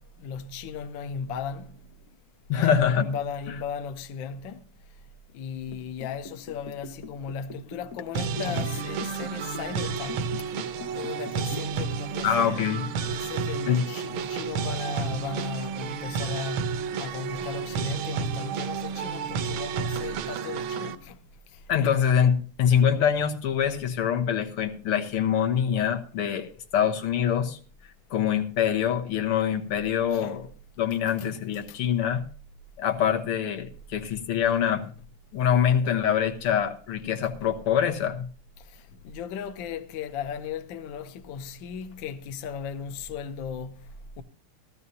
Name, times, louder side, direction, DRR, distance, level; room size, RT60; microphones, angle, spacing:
voice 1, 0.0-1.8 2.5-4.6 5.3-10.3 10.9-12.6 13.1-21.2 21.5-22.0 30.1-30.4 31.1-31.8 38.6-44.2, left 6 dB, 70° left, 1.4 m, -36 dB
voice 2, 2.5-3.1 12.2-12.8 13.7-13.8 21.7-27.6 28.1-30.5 30.8-32.3 32.8-34.9 35.3-38.3, left 8 dB, 90° left, 2.1 m, -24 dB
Liquid, 5.7-11.8 12.1-12.2, left 4 dB, 45° left, 1.2 m, -41 dB
sound 1, 8.1-20.9, right 6 dB, 75° right, 1.5 m, -31 dB
15.5 x 13.5 x 2.8 m
omnidirectional pair, 2.4 m